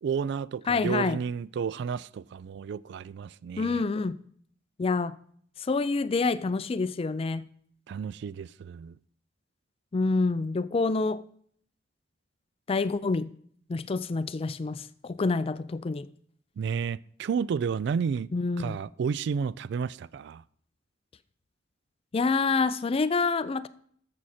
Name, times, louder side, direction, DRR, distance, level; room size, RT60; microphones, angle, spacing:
voice 1, 0.0-3.8 7.9-8.9 16.6-18.3 18.6-20.4, right 6 dB, 65° right, 0.3 m, -31 dB
voice 2, 0.7-1.2 3.6-4.1 4.8-5.2 5.6-7.5 9.9-11.2 12.7-13.3 13.7-16.1 18.3-18.8 22.1-23.7, left 4 dB, 30° left, 0.4 m, -27 dB
13.5 x 6.2 x 4.2 m
head